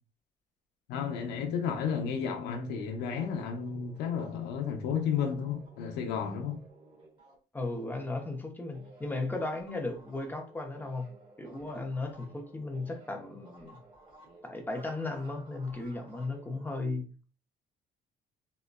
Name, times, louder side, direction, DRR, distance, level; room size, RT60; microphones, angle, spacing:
voice 1, 0.9-6.6, left 7 dB, 85° left, 0.7 m, -32 dB
sound 1, 2.5-8.4 8.7-16.7, right 2 dB, 30° right, 1.5 m, -55 dB
voice 2, 7.5-11.1 11.4-13.8 14.4-17.2, left 2 dB, 10° left, 0.7 m, -36 dB
3.8 x 2.2 x 2.2 m
cardioid pair, 110°, 17 cm